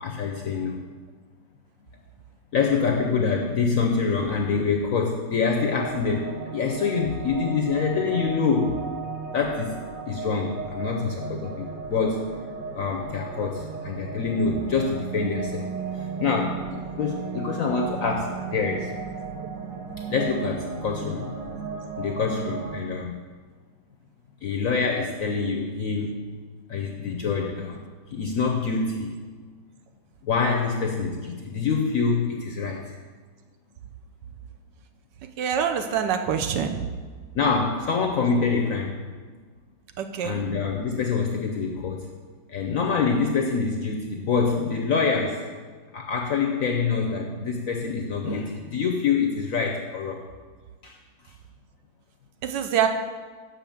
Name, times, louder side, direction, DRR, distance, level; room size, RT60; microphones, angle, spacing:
voice 1, 0.0-0.8 2.5-8.8 9.3-9.8 10.1-12.3 12.7-15.7 15.9-18.9 20.1-21.3 21.9-23.2 24.4-26.2 26.7-29.1 30.2-33.0 37.3-39.0 40.2-42.1 42.5-45.5 45.9-50.3 50.8-51.0 51.2-51.3, left 5 dB, 65° left, 1 dB, 0.8 m, -26 dB
sound 1, 5.4-22.8, right 5 dB, 55° right, 1.1 m, -35 dB
voice 2, 35.4-36.8 40.0-40.4 52.4-52.9, right 8 dB, 75° right, 7 dB, 1.2 m, -25 dB
6.2 x 5.7 x 7.0 m, 1.5 s
omnidirectional pair, 2.1 m